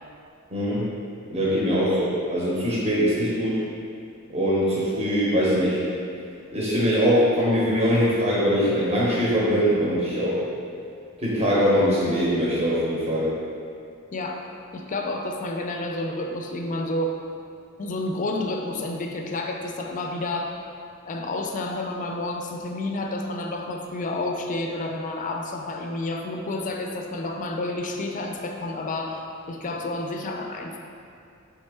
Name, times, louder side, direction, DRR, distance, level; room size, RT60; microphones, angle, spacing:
voice 1, 0.5-0.9 1.3-3.6 4.3-5.9 6.5-10.4 11.2-13.3, equal, 30° right, -7 dB, 0.7 m, -22 dB
voice 2, 14.1-14.4 14.7-17.2 17.8-20.5 21.0-30.8, left 2 dB, 40° left, 2 dB, 0.4 m, -30 dB
4.2 x 3.5 x 3.4 m, 2.5 s
head